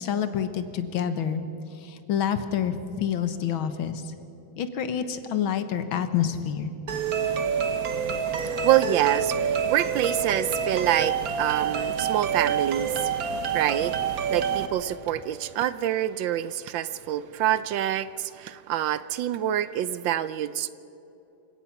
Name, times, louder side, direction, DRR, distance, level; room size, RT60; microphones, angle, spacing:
voice 1, 0.0-1.4 1.8-4.0 4.6-6.7, left 8 dB, 75° left, 10 dB, 2.0 m, -27 dB
sound 1, 6.9-14.7, right 7 dB, 50° right, 1.5 m, -27 dB
voice 2, 8.4-12.9 13.5-13.9 14.3-20.7, right 11 dB, 75° right, 15 dB, 1.3 m, -26 dB
27.5 x 17.0 x 5.9 m, 2.8 s
omnidirectional pair, 2.3 m